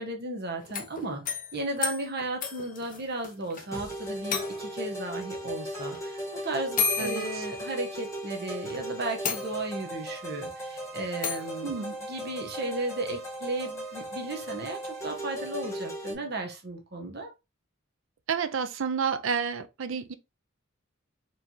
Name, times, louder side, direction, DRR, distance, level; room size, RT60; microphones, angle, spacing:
voice 1, 0.0-17.3, right 2 dB, 50° right, 1.0 m, -35 dB
sound 1, 0.6-3.7 3.9-4.0 4.3-4.9 5.9-6.0 6.8-8.2 8.7-8.8 9.2-9.9 11.2-11.6, left 6 dB, 40° left, 0.8 m, -33 dB
sound 2, 3.7-16.1, right 1 dB, 15° left, 1.5 m, -37 dB
voice 2, 11.6-11.9 18.3-20.1, right 6 dB, 70° right, 0.5 m, -30 dB
4.5 x 3.3 x 2.7 m
head